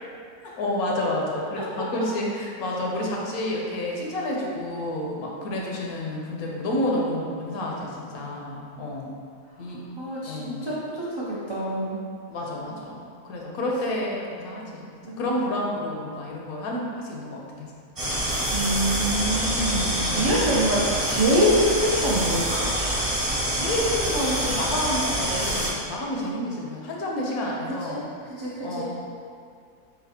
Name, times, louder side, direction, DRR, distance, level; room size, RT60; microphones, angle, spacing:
voice 1, 0.6-9.1 9.6-10.0 10.3-10.7 12.3-14.9 15.2-17.7 19.9-20.3 23.5-28.0 28.6-28.8, left 1 dB, 80° left, -2 dB, 1.2 m, -29 dB
voice 2, 9.6-12.0 15.0-15.4 18.5-22.7 27.5-28.8, equal, 50° right, -9 dB, 0.3 m, -26 dB
sound 1, 18.0-25.7, right 1 dB, 25° right, 0.9 m, -26 dB
4.1 x 4.0 x 2.8 m, 2.2 s
omnidirectional pair, 1.5 m